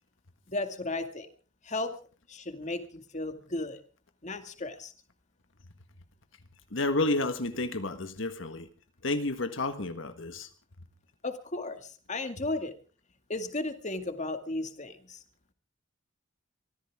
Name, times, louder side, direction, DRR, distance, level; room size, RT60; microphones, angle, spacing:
voice 1, 0.5-1.3 1.6-1.9 2.3-3.8 4.2-4.9 11.2-12.7 13.3-15.2, left 2 dB, 40° left, 2.2 m, -35 dB
voice 2, 6.7-8.7 9.0-10.5, left 2 dB, 75° left, 1.6 m, -30 dB
25.0 x 15.0 x 3.7 m
head